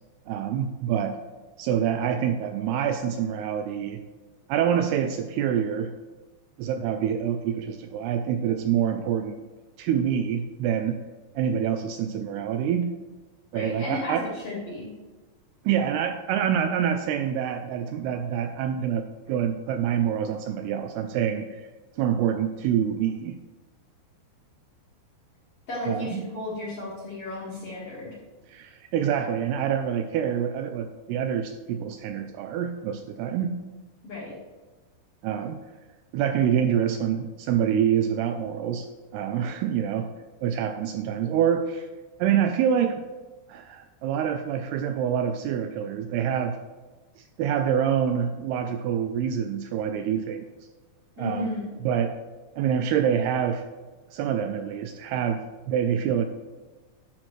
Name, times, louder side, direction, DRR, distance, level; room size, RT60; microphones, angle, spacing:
voice 1, 0.3-1.2 1.6-4.0 4.5-5.9 6.6-9.4 9.8-11.0 11.4-12.9 13.5-14.3 15.6-21.7 21.9-23.4 25.9-26.2 28.5-33.6 35.2-35.6 36.1-40.1 40.4-41.9 42.2-43.0 43.5-46.6 47.2-50.5 51.2-51.5 51.8-52.2 52.6-53.6 54.1-56.3, right 8 dB, 85° right, 7 dB, 2.4 m, -26 dB
voice 2, 13.5-14.9 25.7-28.2 34.0-34.4 51.2-51.8, left 2 dB, 45° left, -6 dB, 2.3 m, -34 dB
11.5 x 6.1 x 3.2 m, 1.3 s
omnidirectional pair, 4.9 m